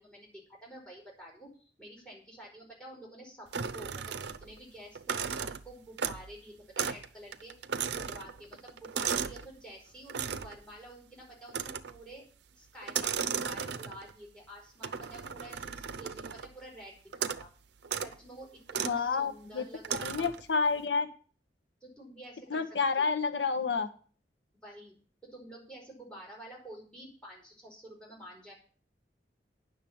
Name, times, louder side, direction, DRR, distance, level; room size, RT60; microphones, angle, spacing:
voice 1, 0.0-3.5 3.7-7.5 7.9-12.2 12.6-17.5 17.9-20.3 21.8-23.1 24.5-24.9 25.3-28.5, right 1 dB, 5° left, -3 dB, 5.0 m, -49 dB
sound 1, 3.5-4.6 4.9-6.4 6.8-7.1 7.3-9.5 10.1-10.6 11.5-12.0 12.8-14.1 14.8-16.5 17.1-17.5 17.8-18.1 18.7-19.0 19.8-20.4, right 7 dB, 70° right, 0.6 m, -35 dB
voice 2, 18.8-19.6 20.0-21.1 22.5-23.9, left 5 dB, 90° left, 9 dB, 0.9 m, -29 dB
9.2 x 6.5 x 8.5 m, 0.42 s
head